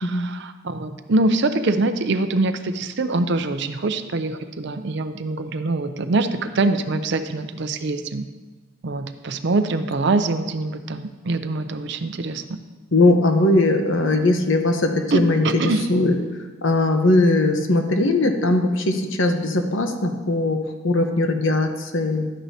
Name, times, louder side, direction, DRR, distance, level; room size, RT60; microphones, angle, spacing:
voice 1, 0.0-8.3 8.8-12.4 15.1-15.9, right 2 dB, 55° right, 9 dB, 0.5 m, -24 dB
voice 2, 12.9-15.4 15.9-16.2 16.6-22.3, left 2 dB, 65° left, 5 dB, 0.9 m, -19 dB
12.0 x 9.1 x 2.8 m, 1.3 s
head